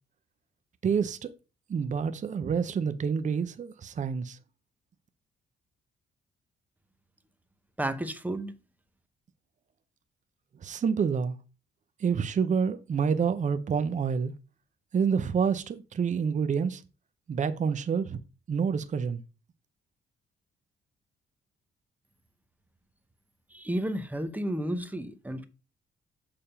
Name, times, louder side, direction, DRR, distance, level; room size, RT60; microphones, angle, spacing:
voice 1, 0.8-1.3 1.7-4.4 10.6-11.4 12.0-14.3 14.9-16.8 17.3-18.2 18.5-19.2, right 6 dB, 40° right, 0.7 m, -28 dB
voice 2, 7.8-8.5 23.5-25.5, right 1 dB, 10° right, 0.9 m, -32 dB
6.8 x 3.5 x 5.6 m
cardioid pair, 90°, 20 cm